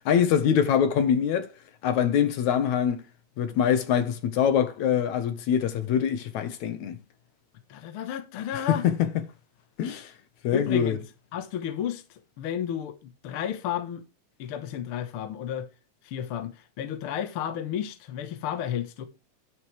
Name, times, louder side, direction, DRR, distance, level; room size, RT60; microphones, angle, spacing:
voice 1, 0.1-1.5 1.8-3.0 3.4-7.0 8.7-9.1 9.8-10.1 10.4-11.0, left 8 dB, 65° left, 2.2 m, -24 dB
voice 2, 7.7-8.8 10.5-11.0 11.3-14.0 14.4-15.7 16.0-19.1, left 9 dB, 85° left, 1.2 m, -32 dB
11.0 x 8.1 x 3.3 m
omnidirectional pair, 4.2 m